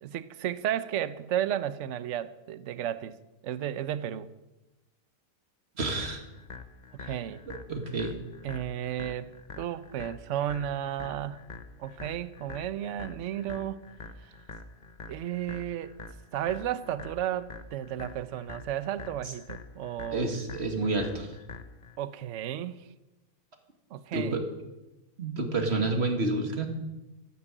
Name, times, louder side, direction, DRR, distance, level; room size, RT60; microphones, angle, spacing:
voice 1, 0.0-3.2 3.4-4.3 6.9-7.4 8.4-9.3 9.6-11.4 11.8-13.8 14.2-14.3 15.1-15.9 16.3-20.3 22.0-22.8 23.9-24.4, right 11 dB, 65° right, 1.0 m, -33 dB
voice 2, 5.8-6.2 7.0-7.1 7.5-8.1 20.1-21.3 24.1-24.5 25.2-26.7, right 2 dB, 45° right, 2.2 m, -29 dB
sound 1, 6.0-22.0, left 4 dB, 35° left, 1.0 m, -46 dB
14.0 x 9.9 x 8.9 m
omnidirectional pair, 1.5 m